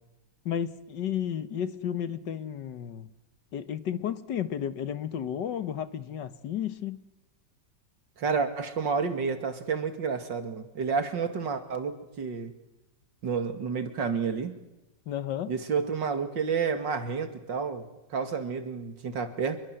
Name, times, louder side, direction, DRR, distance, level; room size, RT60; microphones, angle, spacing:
voice 1, 0.5-3.1 3.5-7.0 15.1-15.5, left 9 dB, 75° left, 13 dB, 1.8 m, -32 dB
voice 2, 8.2-12.5 13.2-14.6 15.5-19.6, right 5 dB, 85° right, 8 dB, 2.9 m, -30 dB
27.0 x 22.5 x 7.8 m, 0.95 s
omnidirectional pair, 1.9 m